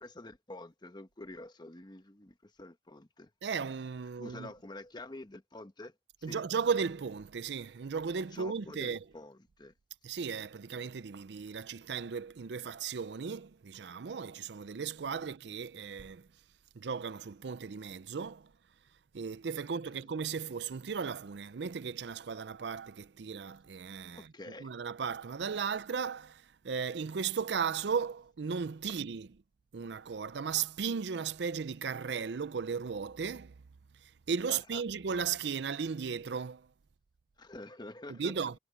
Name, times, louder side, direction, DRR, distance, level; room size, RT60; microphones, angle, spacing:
voice 1, 0.0-3.3 4.2-6.4 8.2-9.7 15.2-15.3 20.0-20.1 24.1-24.7 25.5-25.6 34.5-34.8 37.4-38.5, left 2 dB, 25° left, 1.2 m, -48 dB
voice 2, 3.4-4.5 6.2-9.0 10.0-16.3 16.8-18.5 19.1-24.3 24.6-29.3 29.7-33.5 34.3-36.7 38.1-38.5, right 6 dB, 65° right, 0.5 m, -36 dB
head